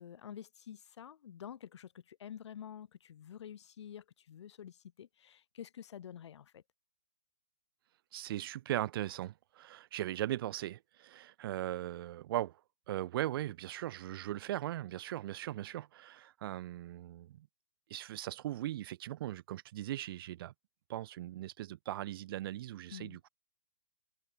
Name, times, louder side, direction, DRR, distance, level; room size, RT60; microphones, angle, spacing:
voice 1, 0.0-6.6 22.9-23.2, left 9 dB, 60° left, 4.3 m, -49 dB
voice 2, 8.1-12.6 12.9-17.5 17.9-20.5 20.9-23.3, right 14 dB, 45° right, 0.5 m, -39 dB
hypercardioid pair, 125°, 16 cm